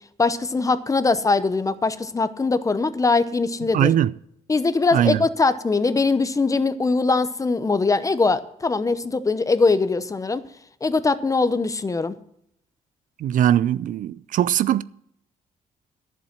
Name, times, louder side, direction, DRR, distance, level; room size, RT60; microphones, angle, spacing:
voice 1, 0.2-3.9 4.5-10.4 10.8-12.1, left 3 dB, 25° left, 0.8 m, -21 dB
voice 2, 3.7-4.1 4.9-5.2 13.2-14.8, right 11 dB, 70° right, 0.4 m, -20 dB
11.0 x 7.4 x 7.4 m
cardioid pair, 100°, 14 cm